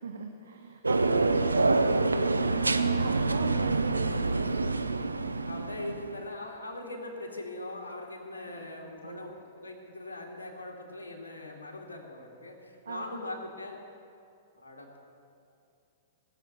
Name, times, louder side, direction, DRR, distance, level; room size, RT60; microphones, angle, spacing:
voice 1, 0.0-4.7 8.5-9.4 12.8-13.2, right 5 dB, 70° right, 4 dB, 1.2 m, -38 dB
sound 1, 0.8-6.2, right 3 dB, 90° right, 0.6 m, -27 dB
voice 2, 5.5-9.3 9.6-13.8 14.6-15.0, left 2 dB, 80° left, 0 dB, 2.3 m, -41 dB
18.0 x 7.8 x 9.2 m, 2.5 s
figure-of-eight pair, 110°, 0 cm